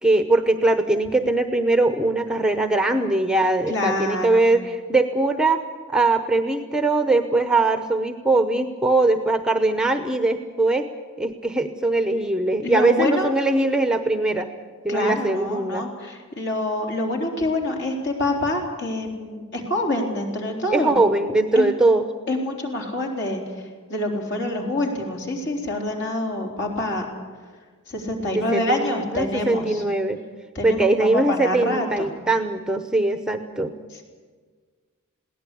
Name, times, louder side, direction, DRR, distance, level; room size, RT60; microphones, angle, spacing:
voice 1, 0.0-5.6 5.9-10.9 11.2-14.5 14.8-15.9 20.7-22.0 28.3-30.2 30.6-33.7, right 2 dB, 5° right, 7 dB, 0.8 m, -21 dB
voice 2, 3.7-4.5 12.6-13.3 14.9-20.9 21.5-21.7 22.3-23.4 23.9-27.1 27.9-29.8 30.5-32.1, left 1 dB, 55° left, 1 dB, 4.0 m, -26 dB
21.5 x 17.0 x 8.6 m, 1.5 s
head